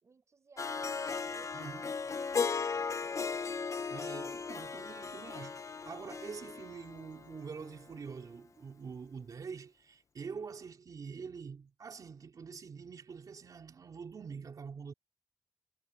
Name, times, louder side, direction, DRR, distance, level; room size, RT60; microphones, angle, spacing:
voice 1, 0.0-3.4, right 4 dB, 50° right, 4.7 m, -61 dB
Harp, 0.6-7.7, left 5 dB, 50° left, 0.8 m, -37 dB
voice 2, 1.5-1.9 3.9-14.9, right 5 dB, 65° right, 3.6 m, -45 dB
wide cardioid pair, 115°, 7 cm